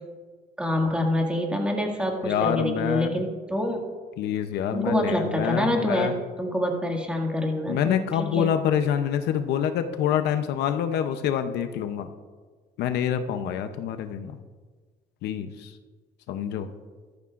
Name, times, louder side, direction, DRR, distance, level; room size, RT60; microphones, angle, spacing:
voice 1, 0.6-3.8 4.7-8.5, left 1 dB, 5° right, 1 dB, 2.1 m, -26 dB
voice 2, 2.2-3.1 4.2-6.1 7.7-12.1 12.8-14.4 15.2-15.7 16.3-16.7, left 9 dB, 80° left, 9 dB, 0.7 m, -26 dB
14.5 x 13.5 x 2.5 m, 1.4 s
cardioid pair, 110°, 17 cm